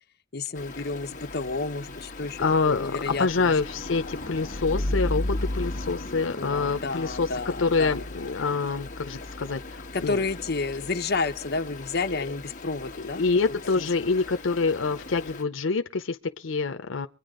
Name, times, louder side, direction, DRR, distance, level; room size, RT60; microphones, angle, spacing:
voice 1, 0.3-2.4 2.7-3.5 6.4-8.0 9.9-13.2 13.7-13.9, left 3 dB, 55° left, 1.1 m, -30 dB
Stream, 0.6-15.4, left 1 dB, 40° left, 1.5 m, -36 dB
voice 2, 2.4-10.2 12.9-17.1, left 4 dB, 85° left, 0.8 m, -26 dB
24.0 x 9.8 x 3.9 m
head